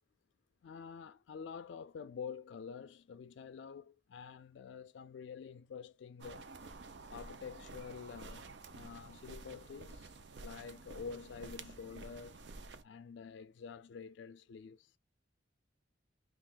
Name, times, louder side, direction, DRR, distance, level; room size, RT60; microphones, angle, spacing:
voice 1, 0.6-6.5 7.1-12.4 12.8-15.0, left 6 dB, 75° left, 0.3 m, -48 dB
sound 1, 6.2-12.8, right 3 dB, 70° right, 0.6 m, -51 dB
5.7 x 2.4 x 2.4 m
head